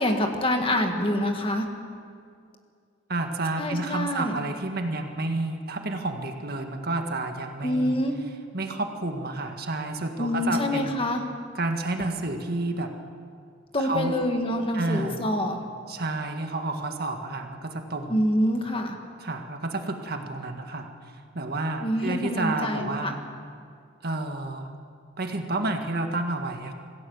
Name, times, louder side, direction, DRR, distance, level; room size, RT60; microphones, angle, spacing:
voice 1, 0.0-1.7 3.6-4.4 7.6-8.2 10.2-11.2 13.7-15.6 18.1-19.0 21.8-23.1, left 1 dB, 30° left, 4 dB, 1.9 m, -26 dB
voice 2, 3.1-8.0 8.5-11.0 11.5-12.9 13.8-14.1 14.7-15.2 15.9-18.2 19.2-20.9 21.3-23.2 24.0-24.7 25.2-26.7, right 2 dB, 55° right, 4 dB, 1.8 m, -30 dB
26.5 x 16.5 x 7.2 m, 2.3 s
head